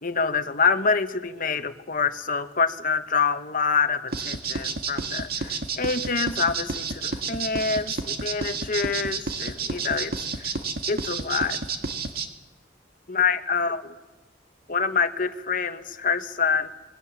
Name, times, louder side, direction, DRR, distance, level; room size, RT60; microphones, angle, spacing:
voice 1, 0.0-10.1 10.4-10.5 10.9-11.6 13.1-13.9 14.7-16.7, left 5 dB, 50° left, 9 dB, 1.2 m, -26 dB
sound 1, 4.1-12.3, right 4 dB, 60° right, 2.0 m, -30 dB
26.0 x 21.0 x 7.3 m, 1.1 s
head